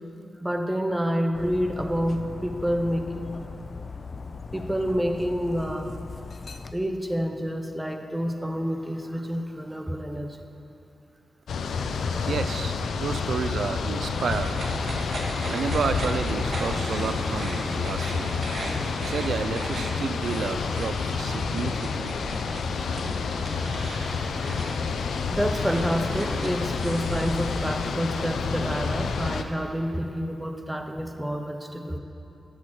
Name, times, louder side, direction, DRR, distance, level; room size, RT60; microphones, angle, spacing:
voice 1, 0.4-3.3 4.5-6.0 6.7-10.4 24.1-24.2 25.3-32.0, equal, 10° right, 5 dB, 0.7 m, -28 dB
Dog, 1.3-6.7, left 4 dB, 40° left, 0.5 m, -39 dB
sound 1, 11.5-29.4, left 5 dB, 85° left, 0.6 m, -29 dB
voice 2, 12.3-14.8 15.5-18.3 19.0-22.1, right 5 dB, 70° right, 10 dB, 0.4 m, -31 dB
sound 2, 14.1-27.7, right 1 dB, 55° right, 1.7 m, -38 dB
13.0 x 6.6 x 6.0 m, 2.7 s
wide cardioid pair, 130°, 0 cm